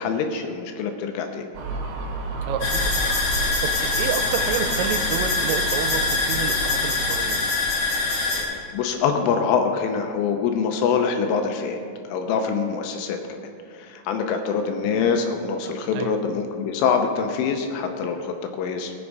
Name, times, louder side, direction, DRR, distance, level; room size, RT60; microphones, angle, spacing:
voice 1, 0.0-1.5 8.3-11.8 12.1-13.5 13.7-18.9, left 6 dB, 85° left, 5 dB, 3.2 m, -25 dB
Gull seagull, 1.5-7.4, right 3 dB, 70° right, 2.8 m, -32 dB
voice 2, 2.4-3.1 3.4-7.4 15.9-16.2, right 7 dB, 85° right, 7 dB, 3.3 m, -30 dB
sound 1, 2.6-8.4, left 3 dB, 50° left, 1.9 m, -24 dB
20.0 x 7.2 x 4.8 m, 2.3 s
omnidirectional pair, 6.0 m